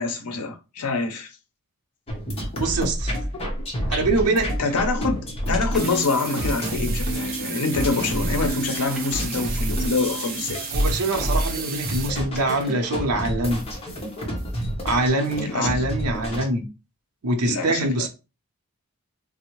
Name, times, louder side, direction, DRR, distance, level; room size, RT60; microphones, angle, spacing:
voice 1, 0.0-1.3 4.6-10.6 15.4-15.8 17.4-18.1, left 3 dB, 85° left, 0.6 m, -26 dB
sound 1, 2.1-16.4, equal, 25° left, 0.8 m, -28 dB
voice 2, 2.6-3.1 3.9-4.5 10.7-13.6 14.8-16.7 17.2-18.1, right 2 dB, 85° right, 0.6 m, -24 dB
sound 2, 5.5-6.3 6.6-6.8 7.0-7.1 7.7-8.2 9.0-9.6 11.0-11.3 12.4-13.1 13.7-13.8, equal, ahead, 0.8 m, -44 dB
sound 3, 5.7-12.1, right 7 dB, 40° right, 0.4 m, -34 dB
3.5 x 2.0 x 2.9 m
head